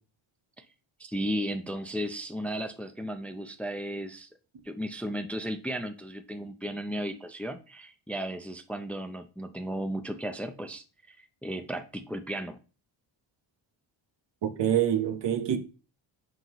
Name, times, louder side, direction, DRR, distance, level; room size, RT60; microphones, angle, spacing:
voice 1, 1.0-4.3 4.6-12.6, equal, 5° left, 0.5 m, -35 dB
voice 2, 14.4-15.6, right 10 dB, 60° right, 1.1 m, -26 dB
8.0 x 5.6 x 3.1 m
wide cardioid pair, 140°, 48 cm